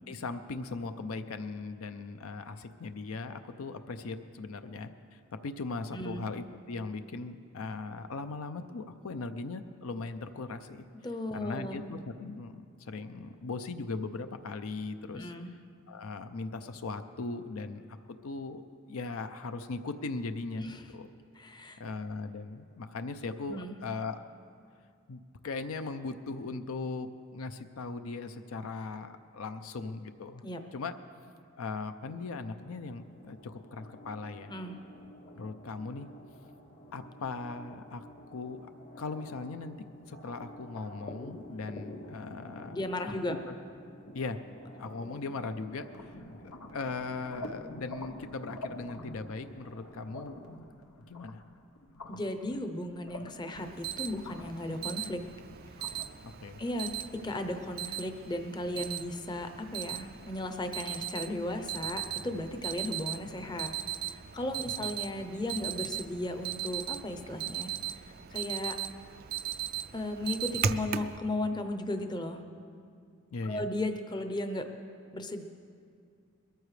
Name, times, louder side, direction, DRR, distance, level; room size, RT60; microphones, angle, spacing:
voice 1, 0.1-10.8 11.3-15.3 15.9-18.6 18.9-21.1 21.8-24.3 25.1-30.4 30.7-31.0 31.6-34.5 35.3-36.1 36.9-38.7 39.0-39.7 40.1-42.8 43.3-43.6 44.1-44.5 44.8-46.1 46.4-50.4 51.1-51.4 56.2-56.6 64.8-64.9 73.3-73.7, left 3 dB, 65° left, 9 dB, 0.5 m, -39 dB
voice 2, 5.9-6.3 11.0-11.8 15.1-15.5 20.6-20.8 21.3-21.8 23.5-23.8 30.4-30.6 34.5-34.8 42.7-43.4 52.1-55.2 55.8-56.0 56.6-56.9 57.2-63.7 64.0-68.0 68.3-68.8 69.9-72.4 73.4-74.7 75.1-75.4, left 1 dB, 20° left, 7 dB, 0.7 m, -36 dB
sound 1, 32.6-50.6, left 1 dB, 35° left, 1.0 m, -50 dB
sound 2, 45.9-57.0, left 1 dB, 90° left, 1.0 m, -47 dB
Alarm, 53.6-71.2, right 10 dB, 45° right, 0.4 m, -38 dB
21.5 x 14.0 x 3.3 m, 2.3 s
head